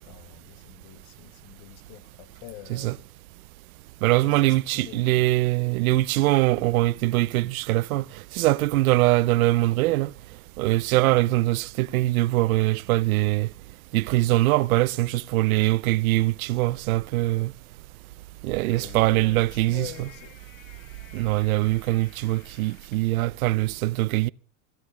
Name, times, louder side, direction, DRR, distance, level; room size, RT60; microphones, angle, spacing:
voice 1, 0.0-3.0 4.0-5.5 18.5-20.4, left 15 dB, 55° left, 1.4 m, -46 dB
voice 2, 4.0-8.0 8.3-10.1 10.6-13.5 13.9-17.5 18.4-19.9 21.1-24.3, right 18 dB, 85° right, 0.6 m, -22 dB
sound 1, 18.3-23.1, left 11 dB, 75° left, 3.0 m, -54 dB
27.5 x 11.0 x 3.2 m
supercardioid pair, 145°, 41 cm